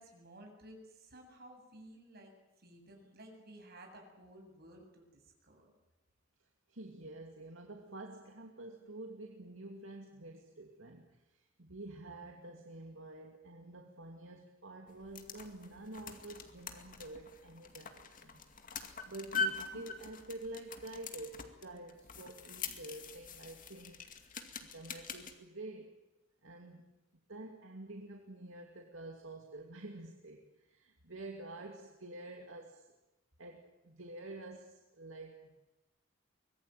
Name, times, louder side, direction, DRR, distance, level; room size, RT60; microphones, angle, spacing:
voice 1, 0.0-5.7, right 1 dB, 50° right, 2 dB, 7.9 m, -55 dB
voice 2, 6.4-18.4 18.8-24.0 24.6-25.9 26.4-26.9 27.3-32.9 33.4-35.6, right 2 dB, 70° right, 2 dB, 2.6 m, -48 dB
sound 1, 14.9-25.3, left 4 dB, 40° left, 2.4 m, -43 dB
24.5 x 20.5 x 9.1 m, 1.0 s
head